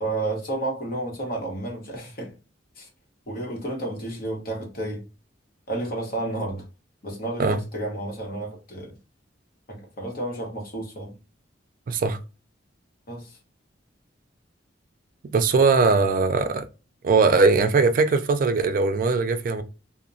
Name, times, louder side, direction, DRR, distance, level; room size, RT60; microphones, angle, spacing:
voice 1, 0.0-2.3 2.8-2.9 3.3-5.0 5.7-6.6 7.0-8.9 9.7-11.1 13.1-13.4, right 2 dB, 50° left, 0.9 m, -31 dB
voice 2, 11.9-12.2 15.3-16.7 17.0-19.6, right 4 dB, 45° right, 0.3 m, -20 dB
2.9 x 2.0 x 2.5 m
head